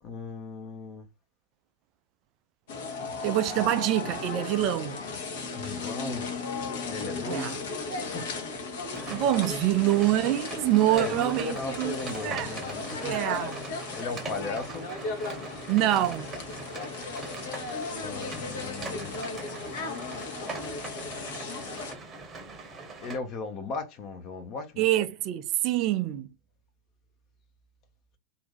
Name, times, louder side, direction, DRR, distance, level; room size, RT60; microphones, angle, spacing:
voice 1, 0.0-1.1 5.5-6.4 6.9-8.3 10.8-13.2 13.9-14.9 18.0-19.2 21.8-22.1 23.0-24.9, left 3 dB, 35° left, 0.9 m, -37 dB
sound 1, 2.7-21.9, left 4 dB, 55° left, 1.0 m, -36 dB
voice 2, 3.2-5.0 7.2-7.5 9.1-11.9 12.2-12.5 13.0-13.6 15.7-16.3 24.8-26.3, right 13 dB, 40° right, 0.4 m, -25 dB
sound 2, 8.9-23.2, right 3 dB, 20° right, 0.9 m, -41 dB
2.7 x 2.7 x 3.8 m
figure-of-eight pair, 90°, 0 cm